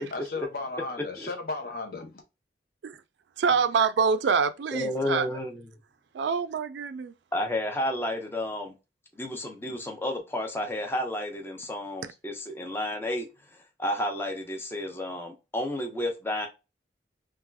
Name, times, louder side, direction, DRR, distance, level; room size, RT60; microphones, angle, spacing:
voice 1, 0.0-2.2, left 3 dB, 55° left, 0.8 m, -35 dB
voice 2, 3.4-5.3 6.1-7.1, right 5 dB, 75° right, 0.3 m, -25 dB
voice 3, 4.7-5.6 7.3-8.7 9.2-13.3 13.8-16.5, left 1 dB, 15° left, 0.5 m, -31 dB
3.4 x 2.3 x 2.3 m
head